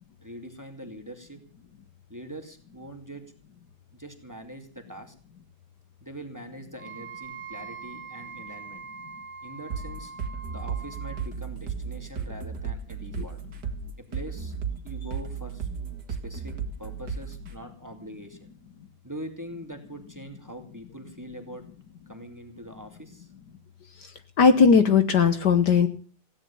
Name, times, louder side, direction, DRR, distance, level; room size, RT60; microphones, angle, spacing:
voice 1, 0.2-1.4 2.1-3.3 3.9-5.1 6.0-8.8 9.4-10.1 10.5-13.4 14.0-14.5 14.8-15.7 16.1-18.4 19.0-21.6 22.1-23.3, right 1 dB, 10° right, 5 dB, 2.5 m, -42 dB
Wind instrument woodwind instrument, 6.8-11.3, right 5 dB, 80° right, 2.9 m, -42 dB
sound 1, 9.7-17.5, right 6 dB, 55° right, 2.4 m, -34 dB
voice 2, 24.4-25.9, left 6 dB, 60° left, 10 dB, 1.6 m, -18 dB
16.5 x 11.0 x 7.0 m, 0.40 s
omnidirectional pair, 2.2 m